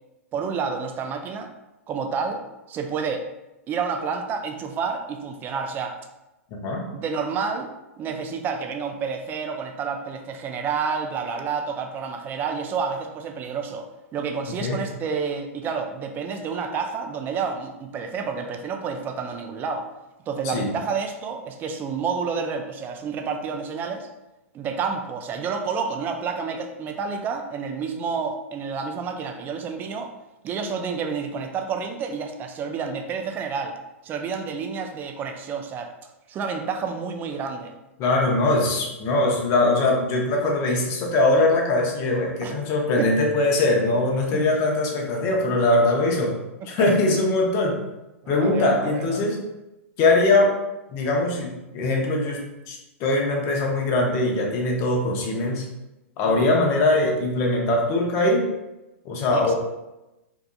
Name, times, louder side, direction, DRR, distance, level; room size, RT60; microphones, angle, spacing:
voice 1, 0.3-1.5 1.9-3.2 3.7-6.0 6.9-7.7 8.0-13.9 14.1-19.9 20.3-24.1 24.5-30.1 30.4-33.8 34.0-35.9 36.3-37.7 42.4-42.5 43.0-43.1 44.3-44.4 46.6-46.7 48.2-49.2 56.2-56.6 59.3-59.5, right 5 dB, 25° right, 5 dB, 0.3 m, -29 dB
voice 2, 6.5-6.9 14.6-14.8 20.4-20.7 38.0-46.4 46.7-47.8 48.3-49.4 50.0-50.6 50.9-55.7 56.2-58.5 59.0-59.5, left 2 dB, 40° left, 0 dB, 0.6 m, -22 dB
2.7 x 2.3 x 2.2 m, 0.98 s
hypercardioid pair, 115°, 8 cm